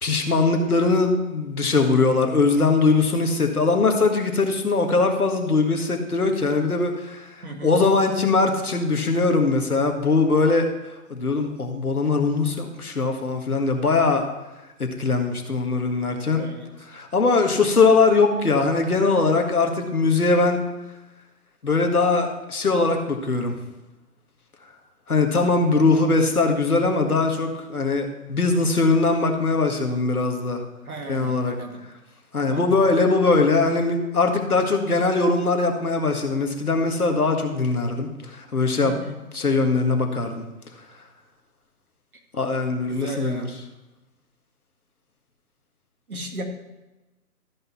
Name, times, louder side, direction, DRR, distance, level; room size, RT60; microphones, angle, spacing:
voice 1, 0.0-10.7 11.1-14.3 14.8-16.4 16.9-20.6 21.6-23.6 25.1-30.6 31.1-31.6 32.3-39.0 39.3-40.4 42.3-43.5, left 3 dB, 70° left, 4 dB, 1.8 m, -21 dB
voice 2, 7.4-7.8 16.3-16.8 30.8-31.8 32.5-32.7 38.8-39.2 42.9-43.5 46.1-46.4, right 2 dB, 65° right, 3 dB, 2.0 m, -35 dB
13.5 x 5.4 x 5.7 m, 1.1 s
figure-of-eight pair, 145°, 46 cm